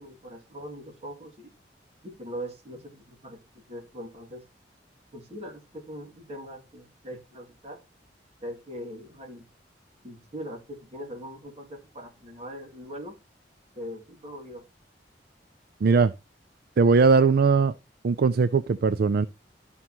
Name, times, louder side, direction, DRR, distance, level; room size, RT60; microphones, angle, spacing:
voice 1, 0.0-1.5 2.0-3.4 3.7-4.4 5.1-7.8 8.4-9.5 10.0-13.2 13.8-14.7, equal, 35° right, 2.4 m, -41 dB
voice 2, 15.8-16.1 16.8-17.7 18.0-19.3, right 4 dB, 60° right, 0.4 m, -20 dB
13.0 x 5.5 x 3.0 m
head